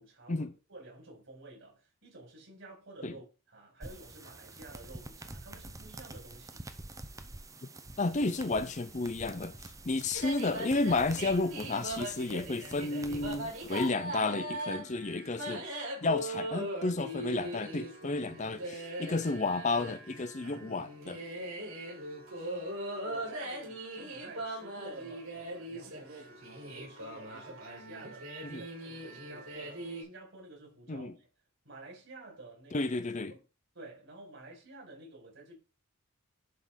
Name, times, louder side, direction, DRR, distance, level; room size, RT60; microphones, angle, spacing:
voice 1, 0.0-6.6 22.4-31.3 31.6-32.8 33.3-33.4 33.7-35.6, right 2 dB, 60° right, 5.4 m, -51 dB
sound 1, 3.8-13.9, right 2 dB, 15° right, 0.7 m, -48 dB
voice 2, 8.0-9.5 9.9-15.6 16.0-21.2 28.4-28.6 30.9-31.1 32.7-33.3, left 3 dB, 35° left, 0.5 m, -32 dB
sound 2, 10.1-30.0, right 1 dB, 85° right, 5.6 m, -40 dB
11.0 x 4.0 x 5.1 m
head